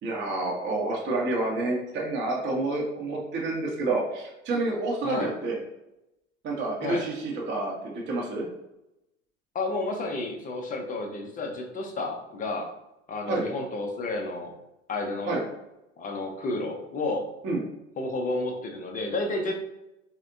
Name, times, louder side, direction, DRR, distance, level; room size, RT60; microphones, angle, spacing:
voice 1, 0.0-5.6 6.4-8.5 13.3-13.5 15.3-15.4 17.4-17.6, right 2 dB, 30° right, -2 dB, 0.8 m, -29 dB
voice 2, 9.5-12.7 13.1-14.5 14.9-15.3 16.0-17.3 18.0-19.5, left 2 dB, 20° left, 2 dB, 0.6 m, -31 dB
4.1 x 2.1 x 2.6 m, 0.90 s
figure-of-eight pair, 70°, 36 cm